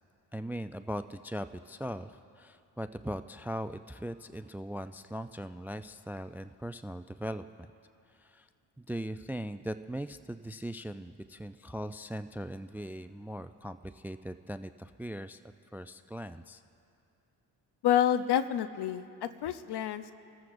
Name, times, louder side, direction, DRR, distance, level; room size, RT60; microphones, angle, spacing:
voice 1, 0.3-7.4 8.2-8.5 8.8-15.4 15.7-16.6, equal, 5° right, 12 dB, 0.3 m, -39 dB
voice 2, 17.8-20.1, left 10 dB, 60° left, 12 dB, 0.8 m, -28 dB
28.0 x 14.0 x 2.6 m, 2.6 s
supercardioid pair, 50°, 44 cm